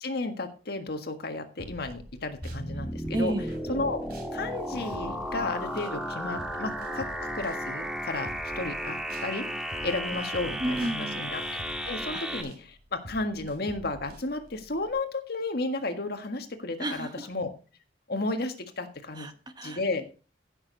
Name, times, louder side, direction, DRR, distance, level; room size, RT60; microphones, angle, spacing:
voice 1, 0.0-3.3 3.7-4.0 4.3-7.1 7.3-8.3 8.6-17.5 18.1-19.3 19.6-20.0, left 2 dB, 65° left, 6 dB, 1.7 m, -33 dB
sound 1, 1.6-2.6 3.1-9.3 9.7-14.9, equal, 60° right, 3.4 m, -47 dB
sound 2, 2.4-12.4, equal, 5° right, 1.6 m, -34 dB
voice 2, 3.1-3.5 10.6-11.3 16.8-17.3 19.1-20.0, right 1 dB, 25° right, 8 dB, 1.2 m, -32 dB
15.5 x 6.7 x 4.0 m, 0.35 s
head